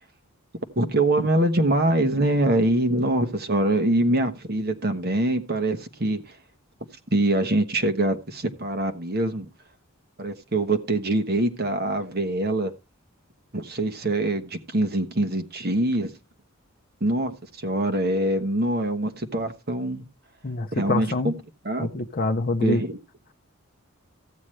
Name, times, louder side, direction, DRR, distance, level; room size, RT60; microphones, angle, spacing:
voice 1, 0.8-6.4 7.1-9.5 10.2-12.7 13.5-16.1 17.0-20.1 20.7-21.3 21.6-21.9 22.6-23.0, right 1 dB, 45° right, 1.1 m, -24 dB
voice 2, 20.4-21.3 21.8-22.8, left 2 dB, 40° left, 0.6 m, -25 dB
14.5 x 8.9 x 3.2 m
head